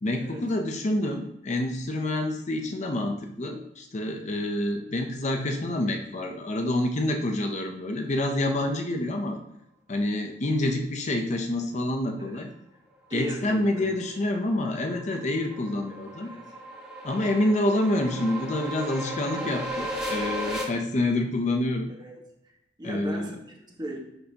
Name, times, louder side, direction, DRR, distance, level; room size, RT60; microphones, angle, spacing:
voice 1, 0.0-9.4 9.9-12.5 13.1-16.3 17.0-21.9 22.8-23.3, left 1 dB, 40° left, 4 dB, 0.7 m, -27 dB
voice 2, 12.2-12.5 13.1-13.9 16.2-16.6 20.2-20.6 21.9-22.2 22.8-24.0, right 1 dB, 25° right, -1 dB, 1.4 m, -38 dB
sound 1, 14.0-20.6, equal, 5° right, 1.5 m, -35 dB
11.0 x 4.2 x 2.9 m, 0.84 s
head